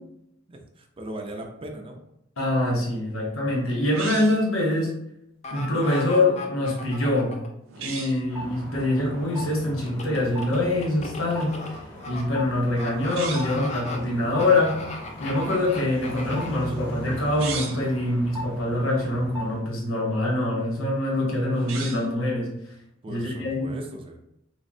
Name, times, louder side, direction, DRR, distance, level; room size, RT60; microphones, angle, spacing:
voice 1, 0.5-2.0 23.0-24.2, right 1 dB, 25° right, 3 dB, 0.4 m, -38 dB
voice 2, 2.4-4.9 5.5-7.4 7.8-11.6 12.1-14.8 15.2-22.5 23.1-23.8, left 1 dB, 90° left, -2 dB, 1.0 m, -24 dB
sound 1, 3.9-4.5 7.7-8.2 13.0-13.6 17.2-17.9 21.5-22.2, right 6 dB, 80° right, 0.5 m, -36 dB
sound 2, 5.4-7.5 9.9-12.2 12.8-13.2 13.4-14.0 14.4-16.6 17.1-17.2, left 2 dB, 35° left, 0.4 m, -37 dB
sound 3, 8.3-19.7, equal, 10° left, 0.9 m, -39 dB
3.4 x 2.1 x 2.5 m, 0.78 s
head